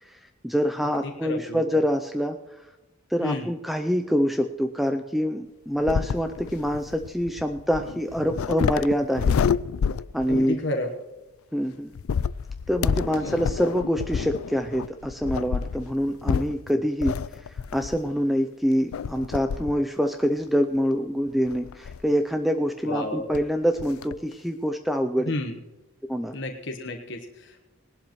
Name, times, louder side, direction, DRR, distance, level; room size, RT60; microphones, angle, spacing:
voice 1, 0.0-2.4 3.1-9.4 10.1-10.6 11.5-11.9 12.7-17.1 17.4-25.3 26.1-26.3, equal, ahead, 6 dB, 0.4 m, -25 dB
voice 2, 1.0-1.8 3.2-3.5 10.3-10.9 13.2-13.4 22.8-23.3 25.2-25.6 26.3-27.6, left 2 dB, 55° left, 3 dB, 1.2 m, -31 dB
sound 1, 5.8-10.6 12.0-18.2 18.9-19.8 20.2-20.3 21.5-22.1 23.1-23.2 23.3-23.5 23.8-24.2, left 6 dB, 85° left, 0.4 m, -29 dB
20.0 x 11.5 x 3.1 m, 1.1 s
head